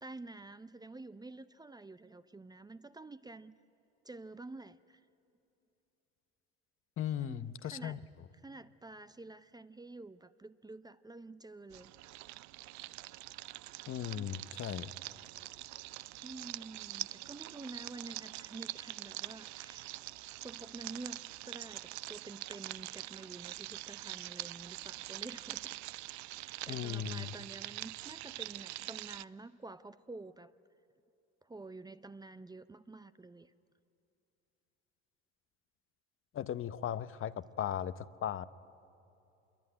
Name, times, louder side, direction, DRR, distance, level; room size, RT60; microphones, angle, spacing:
voice 1, 0.0-3.6 4.0-5.0 7.2-8.0 8.4-11.9 14.1-14.3 16.2-19.9 20.3-25.7 26.4-30.5 31.4-33.5, right 3 dB, 15° right, 13 dB, 0.6 m, -49 dB
voice 2, 7.0-8.0 13.9-14.9 26.7-27.3 36.3-38.5, left 10 dB, 45° left, 15 dB, 0.9 m, -37 dB
sound 1, 11.7-29.2, right 18 dB, 65° right, 0.6 m, -44 dB
25.5 x 22.5 x 9.7 m, 2.8 s
supercardioid pair, 95°, 31 cm